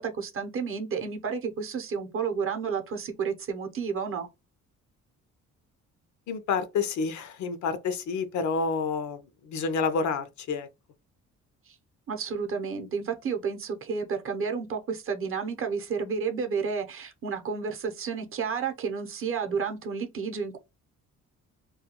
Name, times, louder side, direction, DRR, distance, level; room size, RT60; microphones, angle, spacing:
voice 1, 0.0-4.3 11.7-11.8 12.1-20.6, right 5 dB, 45° right, 0.7 m, -31 dB
voice 2, 6.3-10.7, left 5 dB, 70° left, 0.6 m, -29 dB
2.3 x 2.2 x 2.8 m
cardioid pair, 90°, 30 cm